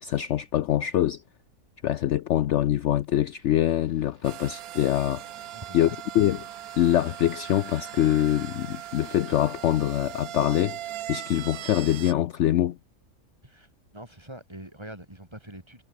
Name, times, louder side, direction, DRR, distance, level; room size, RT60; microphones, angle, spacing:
voice 1, 0.0-1.2 1.8-5.5 5.7-5.9 6.1-6.5 6.7-10.8 11.1-12.8, left 12 dB, 65° left, 0.8 m, -24 dB
sound 1, 2.2-9.9, right 2 dB, 40° right, 4.3 m, -53 dB
sound 2, 4.2-12.1, right 13 dB, 80° right, 1.2 m, -40 dB
sound 3, 5.0-6.6, right 1 dB, 55° right, 7.7 m, -62 dB
voice 2, 5.5-6.0 13.4-15.8, right 1 dB, 20° right, 3.7 m, -44 dB
omnidirectional pair, 1.5 m